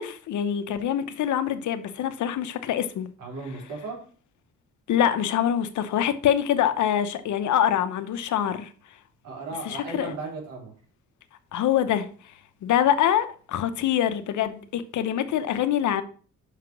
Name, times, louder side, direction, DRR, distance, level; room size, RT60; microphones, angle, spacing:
voice 1, 0.0-3.1 4.9-8.7 9.7-10.1 11.5-12.1 12.6-16.0, left 10 dB, 75° left, 0.9 m, -25 dB
voice 2, 3.2-4.0 9.2-10.7, right 3 dB, 80° right, 4.1 m, -36 dB
5.9 x 5.8 x 6.0 m
cardioid pair, 90°, 30 cm